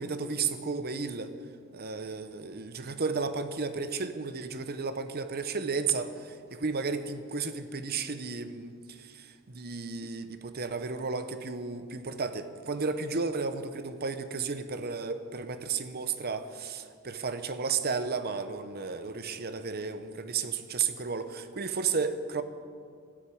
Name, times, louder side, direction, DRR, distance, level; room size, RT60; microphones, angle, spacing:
voice 1, 0.0-1.3 1.7-22.4, right 5 dB, 45° right, 10 dB, 0.9 m, -33 dB
13.5 x 12.0 x 8.5 m, 2.2 s
head